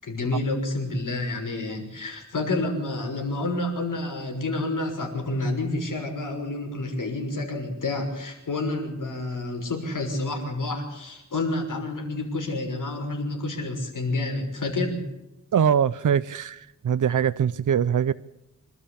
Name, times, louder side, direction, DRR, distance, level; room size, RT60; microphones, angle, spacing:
voice 1, 0.0-15.0, left 2 dB, 80° left, 6.2 m, -29 dB
voice 2, 15.5-18.1, right 8 dB, 75° right, 0.7 m, -22 dB
26.5 x 12.5 x 8.6 m
wide cardioid pair, 130°, 31 cm